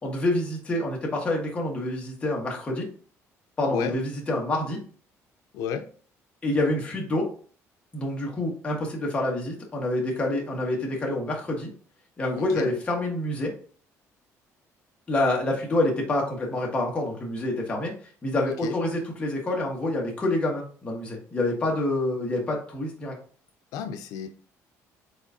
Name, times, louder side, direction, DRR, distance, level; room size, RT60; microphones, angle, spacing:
voice 1, 0.0-2.9 3.6-4.8 6.4-7.3 7.9-11.7 12.2-13.5 15.1-17.9 18.2-23.2, left 1 dB, 20° left, -1 dB, 1.4 m, -27 dB
voice 2, 5.5-5.9 12.4-12.7 18.5-18.8 23.7-24.3, left 7 dB, 90° left, 6 dB, 0.5 m, -31 dB
4.8 x 3.9 x 2.7 m, 0.43 s
cardioid pair, 160°, 6 cm